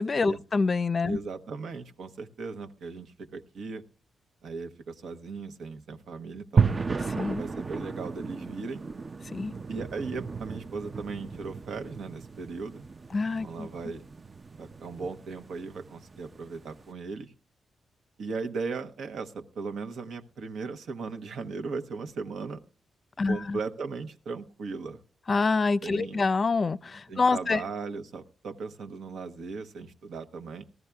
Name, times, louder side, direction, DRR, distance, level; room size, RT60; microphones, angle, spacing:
voice 1, 0.0-1.2 7.2-7.4 9.3-9.5 13.1-13.7 23.2-23.6 25.3-27.6, left 4 dB, 40° left, 0.5 m, -26 dB
voice 2, 1.0-3.8 4.4-6.7 7.3-8.9 9.7-12.8 13.4-14.0 14.6-17.3 18.2-22.6 23.2-25.0 25.8-26.2 27.1-30.6, right 4 dB, 80° right, 1.0 m, -37 dB
sound 1, 6.6-16.8, right 5 dB, 35° right, 0.5 m, -33 dB
19.0 x 14.0 x 2.3 m
cardioid pair, 90°, 0 cm